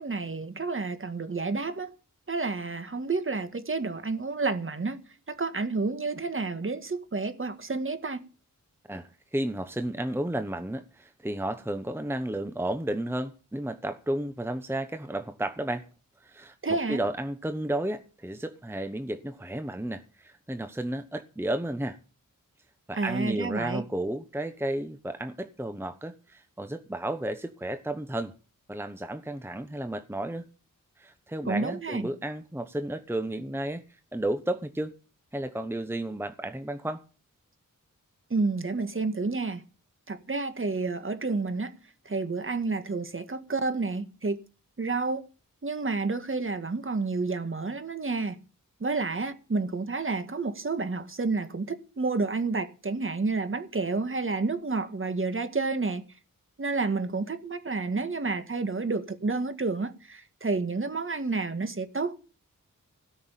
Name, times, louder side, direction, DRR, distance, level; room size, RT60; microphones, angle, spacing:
voice 1, 0.0-1.9 2.3-5.0 5.3-8.2 16.6-17.0 22.9-23.8 31.5-32.1 38.3-39.6 40.1-41.7 42.1-44.4 44.8-45.2 45.6-48.4 48.8-56.0 56.6-62.2, right 3 dB, 40° right, 1.8 m, -30 dB
voice 2, 8.9-15.9 16.2-22.0 22.9-28.3 28.7-30.5 31.0-34.9 35.3-37.0, right 1 dB, 5° right, 0.9 m, -32 dB
17.0 x 6.2 x 9.1 m
wide cardioid pair, 95°, 32 cm